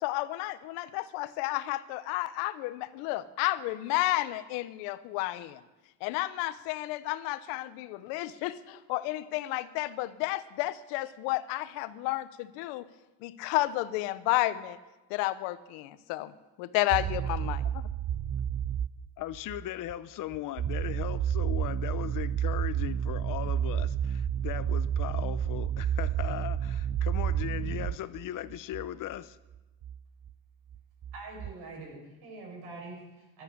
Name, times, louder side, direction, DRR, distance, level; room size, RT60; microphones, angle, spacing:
voice 1, 0.0-5.6 6.0-12.9 13.2-14.8 15.1-16.3 16.6-17.6, left 17 dB, 90° left, 15 dB, 1.0 m, -31 dB
sound 1, 16.9-19.6 19.9-20.0 20.3-28.2 28.5-28.9 29.1-29.2 29.5-29.6 29.8-30.0 30.3-30.4 30.7-31.5, right 9 dB, 40° right, 0.6 m, -30 dB
voice 2, 19.2-29.4, left 13 dB, 55° left, 16 dB, 0.8 m, -38 dB
voice 3, 31.1-33.4, right 3 dB, 70° right, 0 dB, 7.2 m, -44 dB
13.0 x 11.5 x 9.4 m, 1.1 s
cardioid pair, 115°, 39 cm